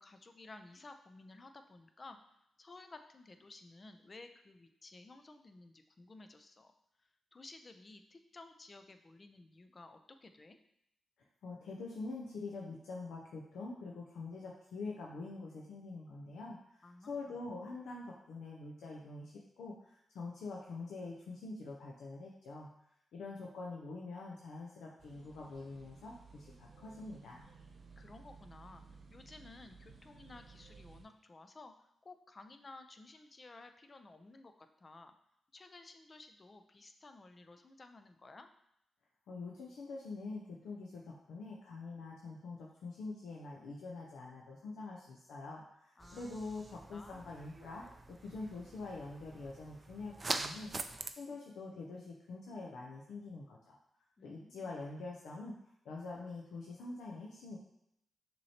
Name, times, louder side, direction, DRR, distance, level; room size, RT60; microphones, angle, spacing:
voice 1, 0.0-6.7 7.0-10.6 16.8-17.1 28.0-31.7 32.0-35.1 35.5-38.5 46.0-46.4 46.9-47.2 54.2-54.7, left 3 dB, 35° left, 7 dB, 0.5 m, -55 dB
voice 2, 11.4-22.7 23.1-27.4 39.3-53.8 54.2-55.5 55.8-57.6, left 3 dB, 85° left, -2 dB, 0.6 m, -45 dB
sound 1, 25.0-31.0, right 4 dB, 70° right, 0.9 m, -57 dB
sound 2, 46.0-51.1, right 3 dB, 35° right, 0.4 m, -44 dB
6.1 x 3.0 x 2.8 m, 0.77 s
cardioid pair, 75°, 0 cm